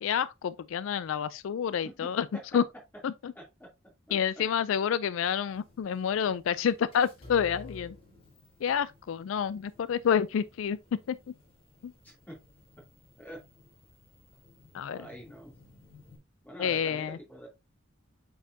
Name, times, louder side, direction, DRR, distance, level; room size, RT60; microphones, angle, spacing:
voice 1, 0.0-2.3 2.5-2.6 3.0-3.3 4.1-8.0 8.6-10.8 11.1-11.3 11.8-11.9 14.7-15.1 16.6-17.2, left 8 dB, 75° left, 0.3 m, -29 dB
voice 2, 1.8-2.4 3.3-3.7 4.1-4.2 12.0-12.4 13.2-13.4 14.9-15.5 16.4-17.5, equal, 10° left, 2.8 m, -46 dB
sound 1, 5.5-16.2, left 3 dB, 30° left, 3.1 m, -54 dB
8.0 x 4.7 x 2.7 m
head